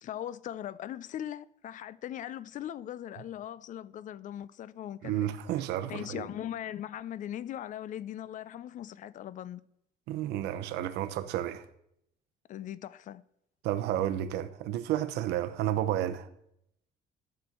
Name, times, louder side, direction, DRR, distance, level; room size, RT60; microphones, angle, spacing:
voice 1, 0.0-5.3 5.9-9.6 12.5-13.2, left 11 dB, 50° left, 0.5 m, -39 dB
voice 2, 5.0-6.3 10.1-11.6 13.6-16.3, right 12 dB, 90° right, 0.9 m, -31 dB
13.0 x 4.4 x 7.7 m
cardioid pair, 110°, 17 cm